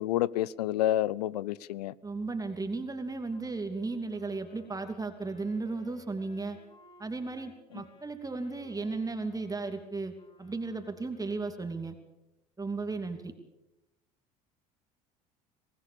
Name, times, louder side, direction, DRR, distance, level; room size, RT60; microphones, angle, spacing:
voice 1, 0.0-1.9, left 13 dB, 75° left, 0.7 m, -29 dB
voice 2, 2.0-6.6 7.0-10.1 10.4-11.9 12.6-13.3, right 3 dB, 15° right, 2.8 m, -35 dB
Wind instrument woodwind instrument, 3.3-11.5, left 2 dB, 25° left, 7.5 m, -60 dB
24.5 x 18.5 x 7.0 m
hypercardioid pair, 65°, 21 cm